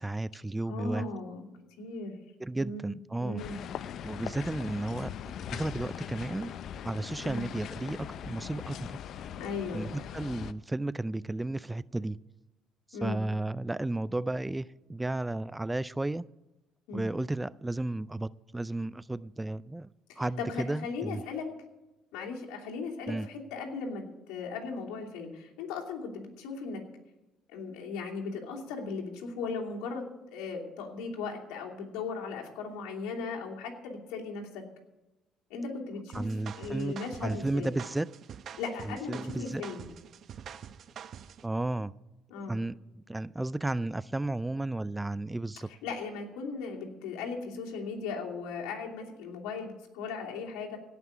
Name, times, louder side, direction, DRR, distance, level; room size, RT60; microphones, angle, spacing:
voice 1, 0.0-1.1 2.4-3.4 4.0-5.1 5.5-6.5 6.8-9.0 9.7-12.2 12.9-16.2 16.9-19.9 20.2-21.2 23.1-23.3 36.1-37.0 37.2-38.1 38.9-39.6 41.4-41.9 42.5-45.7, right 2 dB, 10° right, 0.4 m, -33 dB
voice 2, 0.7-1.5 1.8-2.2 2.6-3.6 7.2-7.4 9.4-9.9 12.9-13.2 16.9-17.1 20.1-21.5 22.1-26.8 27.5-30.0 30.3-34.6 35.5-36.3 36.6-37.7 38.6-39.9 42.3-42.5 45.7-50.8, left 4 dB, 85° left, 2.8 m, -37 dB
sound 1, 3.4-10.5, left 9 dB, 65° left, 0.6 m, -40 dB
sound 2, 36.1-41.4, right 8 dB, 55° right, 0.7 m, -46 dB
17.0 x 5.9 x 9.2 m
supercardioid pair, 80°, 0 cm